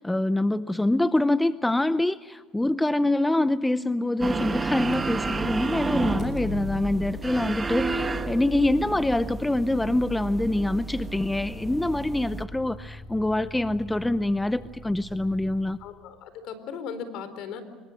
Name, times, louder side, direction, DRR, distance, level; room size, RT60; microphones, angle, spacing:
voice 1, 0.0-15.8, left 1 dB, 10° left, 14 dB, 0.7 m, -25 dB
sound 1, 4.2-12.4, right 3 dB, 20° right, 1.2 m, -31 dB
Motor vehicle (road), 4.8-16.0, left 3 dB, 35° left, 6.7 m, -43 dB
voice 2, 15.8-17.6, left 6 dB, 65° left, 11 dB, 4.2 m, -37 dB
26.5 x 23.0 x 6.5 m, 1.4 s
supercardioid pair, 110°, 0 cm